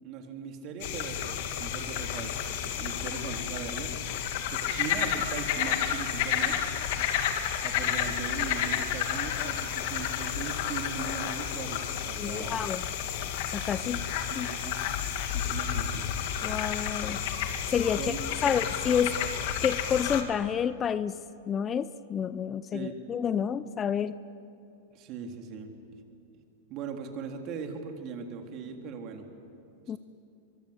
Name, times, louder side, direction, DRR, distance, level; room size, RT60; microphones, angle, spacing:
voice 1, 0.0-3.9 4.5-6.6 7.6-12.6 13.8-14.0 14.4-14.8 15.2-16.0 18.0-18.6 22.7-23.0 24.9-25.7 26.7-29.2, right 5 dB, 45° right, 4 dB, 3.4 m, -39 dB
sound 1, 0.8-20.2, left 9 dB, 60° left, 2.5 m, -31 dB
voice 2, 12.2-12.8 13.5-14.0 14.4-14.5 16.4-17.2 17.7-18.1 18.4-19.2 19.6-21.2 21.5-24.2 29.9-30.0, left 8 dB, 25° left, 16 dB, 0.6 m, -29 dB
23.0 x 23.0 x 8.1 m, 2.7 s
hypercardioid pair, 110°, 0 cm